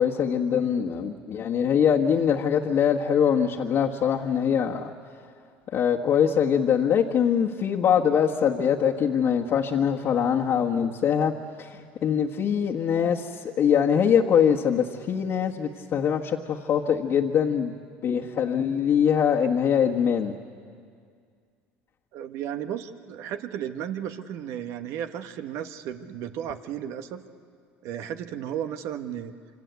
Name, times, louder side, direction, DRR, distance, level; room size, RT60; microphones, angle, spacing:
voice 1, 0.0-4.9 5.7-17.7 18.0-20.3, left 8 dB, 50° left, -2 dB, 1.6 m, -23 dB
voice 2, 22.1-27.2 27.8-29.3, right 9 dB, 65° right, 8 dB, 1.5 m, -34 dB
27.5 x 25.0 x 8.3 m, 2.2 s
supercardioid pair, 85°, 5 cm